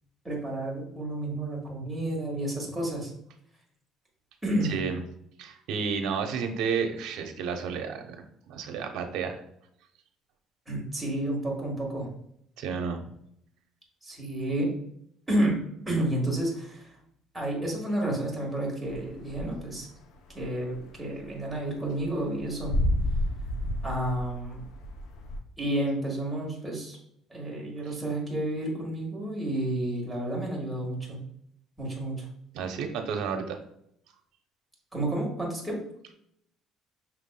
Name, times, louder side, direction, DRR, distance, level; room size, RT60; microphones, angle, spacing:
voice 1, 0.2-3.1 4.4-4.7 10.7-12.1 14.0-14.7 15.3-15.6 15.8-16.9 17.3-19.9 20.3-22.7 23.8-24.6 25.6-27.0 27.3-31.2 31.8-32.3 34.9-35.8, right 1 dB, 5° right, -3 dB, 1.5 m, -30 dB
voice 2, 4.7-5.0 5.4-9.4 12.6-13.0 32.5-33.6, right 6 dB, 75° right, 5 dB, 0.7 m, -31 dB
sound 1, 18.9-19.9 20.2-25.4, left 1 dB, 80° left, 0.6 m, -31 dB
5.9 x 3.5 x 2.2 m, 0.72 s
cardioid pair, 125°, 0 cm